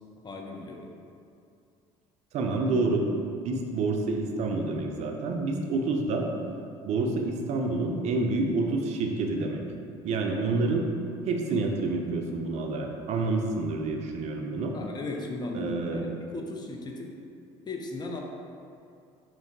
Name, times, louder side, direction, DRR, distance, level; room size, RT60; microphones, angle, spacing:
voice 1, 0.2-0.9 14.7-17.2 17.7-18.2, left 2 dB, 30° left, 1 dB, 0.4 m, -37 dB
voice 2, 2.3-6.3 6.8-9.6 10.0-10.9 11.3-14.7 15.5-16.1, right 3 dB, 55° right, 2 dB, 0.4 m, -28 dB
2.9 x 2.5 x 2.6 m, 2.5 s
hypercardioid pair, 70°, 14 cm